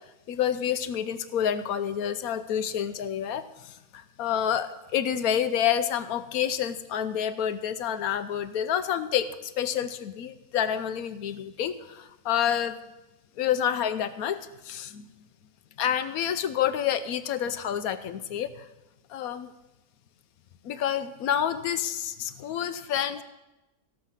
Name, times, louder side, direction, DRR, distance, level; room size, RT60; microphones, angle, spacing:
voice 1, 0.3-12.8 13.4-15.0 15.8-18.7 19.1-19.5 20.6-23.2, left 9 dB, 85° left, 12 dB, 1.2 m, -28 dB
17.0 x 6.7 x 5.7 m, 1.0 s
omnidirectional pair, 1.5 m